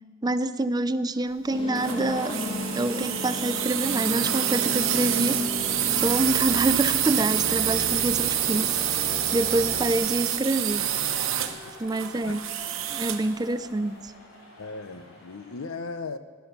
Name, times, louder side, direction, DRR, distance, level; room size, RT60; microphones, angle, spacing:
voice 1, 0.2-2.4 2.7-5.4 5.9-10.9 11.8-12.5 12.9-14.1, right 2 dB, 20° right, 0.4 m, -27 dB
sound 1, 1.5-9.9, left 1 dB, 25° left, 2.0 m, -34 dB
sound 2, 1.7-13.3, right 11 dB, 70° right, 1.0 m, -27 dB
sound 3, 4.4-15.7, left 1 dB, 75° left, 3.7 m, -46 dB
voice 2, 14.6-16.2, left 4 dB, 90° left, 0.8 m, -36 dB
15.5 x 11.5 x 6.9 m
head